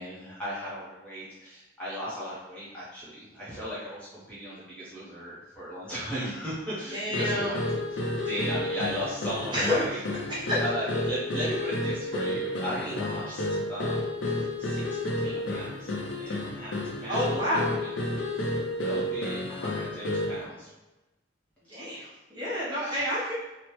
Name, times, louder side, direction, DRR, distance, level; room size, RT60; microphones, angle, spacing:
voice 1, 0.0-7.6 7.9-10.0 10.6-14.0 14.3-14.8 15.2-16.7 17.0-17.9 18.4-18.5 18.8-20.7 21.7-21.8 22.8-23.0, equal, 5° left, -10 dB, 0.7 m, -37 dB
voice 2, 6.9-7.7 8.2-8.3 9.5-10.6 17.1-17.7 21.7-23.3, left 1 dB, 25° right, -8 dB, 0.9 m, -29 dB
sound 1, 7.1-20.4, left 1 dB, 80° left, 0.5 m, -31 dB
3.0 x 2.0 x 3.0 m, 1.0 s
head